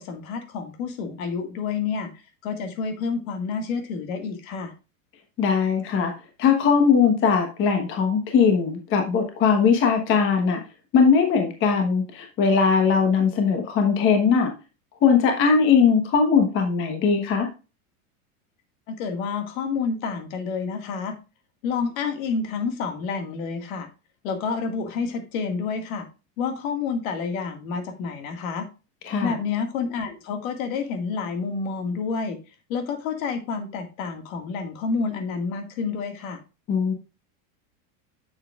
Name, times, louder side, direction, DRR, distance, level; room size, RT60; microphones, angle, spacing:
voice 1, 0.0-2.1 2.4-4.7 18.9-21.1 21.6-23.9 24.2-26.1 26.4-28.6 29.2-32.4 32.7-36.4, left 5 dB, 70° left, 6 dB, 2.0 m, -29 dB
voice 2, 5.4-6.1 6.4-10.6 10.9-14.5 15.0-17.5 29.1-29.3 36.7-36.9, left 6 dB, 30° left, 4 dB, 1.2 m, -20 dB
8.5 x 7.0 x 2.4 m, 0.31 s
supercardioid pair, 165°, 44 cm